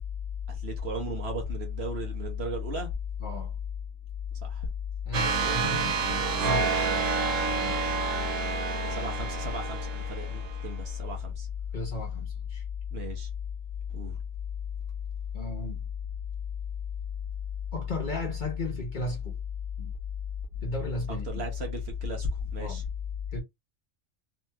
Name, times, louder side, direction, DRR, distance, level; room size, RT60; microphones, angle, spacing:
voice 1, 0.5-2.9 4.4-4.7 6.3-7.0 8.7-11.5 12.9-13.3 13.9-14.2 21.3-22.8, left 3 dB, 55° right, 0.9 m, -33 dB
voice 2, 3.2-3.5 5.0-6.7 7.6-7.9 11.7-12.6 15.3-15.8 17.7-19.4 19.8-19.9 20.6-21.4 22.6-22.8 23.3-23.4, left 1 dB, 45° left, 0.7 m, -35 dB
sound 1, 5.1-10.7, right 5 dB, 80° right, 1.1 m, -29 dB
2.8 x 2.7 x 2.2 m
omnidirectional pair, 1.4 m